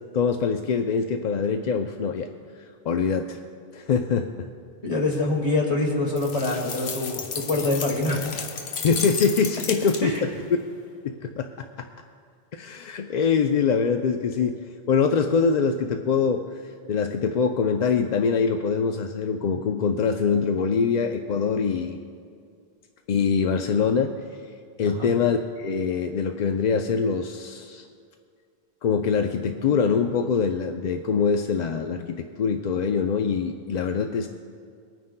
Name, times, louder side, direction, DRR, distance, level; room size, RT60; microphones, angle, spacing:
voice 1, 0.1-2.3 2.9-3.4 3.7-4.5 8.8-10.3 11.0-11.9 12.5-14.6 14.9-16.4 16.9-22.0 23.1-24.1 24.8-27.9 28.8-34.3, left 5 dB, 55° left, 5 dB, 0.5 m, -24 dB
voice 2, 4.8-8.3 10.0-10.2 24.8-25.1, left 2 dB, 35° left, -3 dB, 2.0 m, -25 dB
sound 1, 6.2-10.3, left 5 dB, 85° left, 1.0 m, -33 dB
24.0 x 9.3 x 2.2 m, 2.3 s
omnidirectional pair, 1.0 m